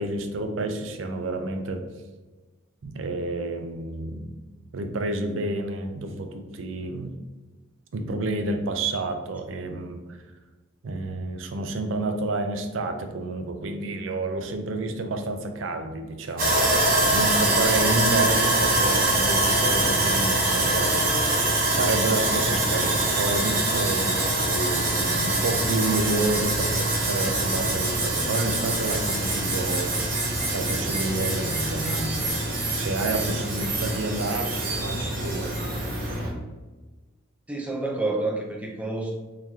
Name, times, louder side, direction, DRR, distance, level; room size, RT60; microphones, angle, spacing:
voice 1, 0.0-1.8 2.8-4.3 4.7-7.1 7.9-10.2 10.8-16.5 17.1-20.9 21.7-32.4 32.7-35.6, right 2 dB, 80° right, 6 dB, 0.5 m, -29 dB
Sawing, 16.4-36.3, right 2 dB, 50° right, 1.0 m, -24 dB
voice 2, 37.5-39.1, right 2 dB, 5° right, 0 dB, 0.5 m, -28 dB
3.8 x 3.1 x 2.7 m, 1.3 s
head